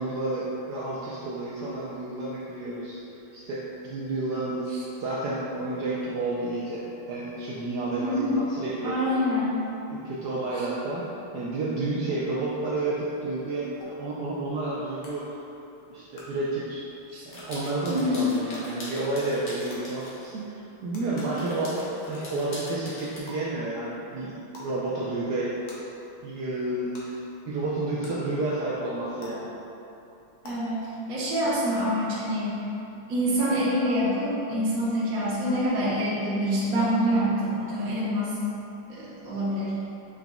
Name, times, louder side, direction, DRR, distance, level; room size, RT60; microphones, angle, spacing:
voice 1, 0.0-3.0 3.3-4.7 5.0-9.0 9.9-15.4 15.9-16.8 17.2-25.5 26.2-27.2 27.5-29.5, right 2 dB, 85° right, -7 dB, 0.9 m, -30 dB
voice 2, 8.0-8.4 8.8-9.6 17.1-17.2 17.9-18.3 30.4-32.6 33.1-38.4 38.9-39.8, equal, 50° right, -9 dB, 1.2 m, -26 dB
sound 1, 13.8-13.9 15.0-15.1 16.1-16.2 17.3-17.4 18.5-18.6 19.7-19.8 20.9-21.0 22.1-22.3 23.3-23.4 24.5-24.7 25.7-25.8 26.9-27.0 28.0-28.1 29.2-29.3 30.4-30.5, left 2 dB, 85° left, 1.8 m, -46 dB
sound 2, 17.3-20.4 21.0-23.2, left 1 dB, 50° left, 1.1 m, -42 dB
5.9 x 3.8 x 2.3 m, 2.9 s
omnidirectional pair, 2.4 m